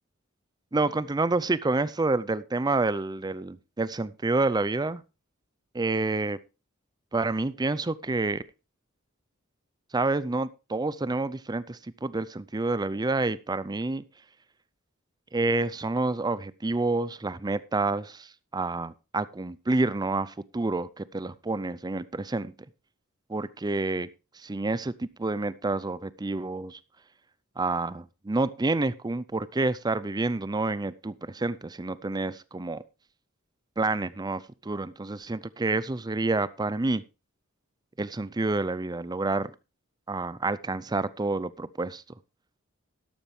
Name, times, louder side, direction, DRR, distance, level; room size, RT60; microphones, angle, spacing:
voice 1, 0.7-5.0 5.7-6.4 7.1-8.4 9.9-14.0 15.3-22.5 23.3-24.1 24.4-26.8 27.6-32.8 33.8-37.0 38.0-39.5 40.1-42.0, right 3 dB, 20° right, 18 dB, 0.5 m, -28 dB
12.5 x 11.5 x 3.2 m, 0.29 s
head